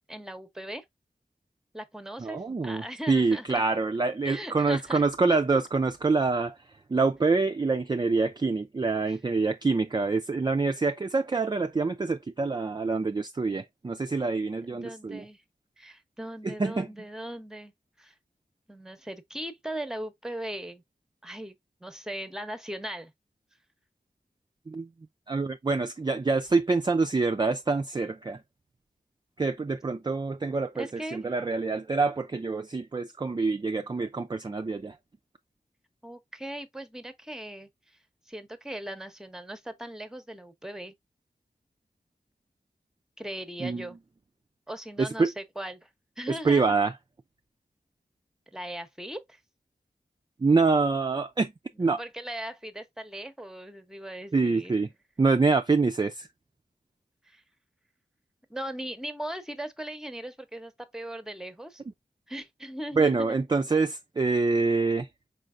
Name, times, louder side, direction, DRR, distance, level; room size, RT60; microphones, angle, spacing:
voice 1, 0.1-0.8 1.7-3.7 4.2-5.1 9.1-9.2 14.6-15.4 15.8-17.7 18.0-18.1 18.7-20.8 21.2-23.1 30.7-31.3 36.0-38.0 38.3-40.9 43.2-44.0 44.7-45.9 46.2-46.8 48.5-49.4 51.7-54.7 57.2-57.4 58.5-61.8 62.3-63.4, right 1 dB, 5° right, 0.7 m, -39 dB
voice 2, 2.2-6.5 6.9-15.2 16.4-16.9 24.7-24.9 25.3-28.4 29.4-30.9 31.1-35.0 43.6-43.8 45.0-45.3 46.4-46.9 50.4-51.5 51.8-52.0 54.3-54.9 55.2-56.3 63.0-65.1, right 4 dB, 25° right, 0.3 m, -26 dB
4.7 x 3.2 x 2.4 m
cardioid pair, 45°, 17 cm